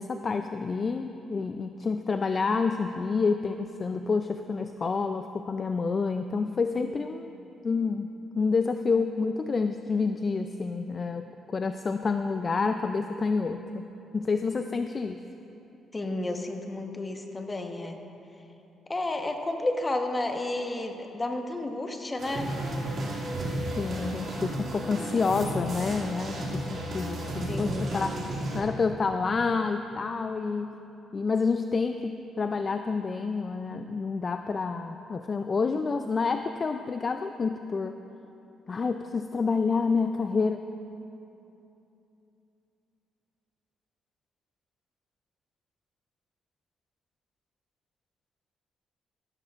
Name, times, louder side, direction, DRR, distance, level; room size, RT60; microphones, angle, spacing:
voice 1, 0.0-7.4 7.6-13.9 14.1-15.2 23.8-28.2 28.5-30.8 31.1-38.0 38.7-40.6, left 4 dB, 40° left, 7 dB, 0.4 m, -28 dB
voice 2, 15.9-18.0 18.9-22.5 27.5-28.2, left 2 dB, 20° left, 4 dB, 1.1 m, -31 dB
sound 1, 22.2-28.6, right 1 dB, 55° right, 2.4 m, -33 dB
15.0 x 13.0 x 2.5 m, 2.9 s
cardioid pair, 90°, 0 cm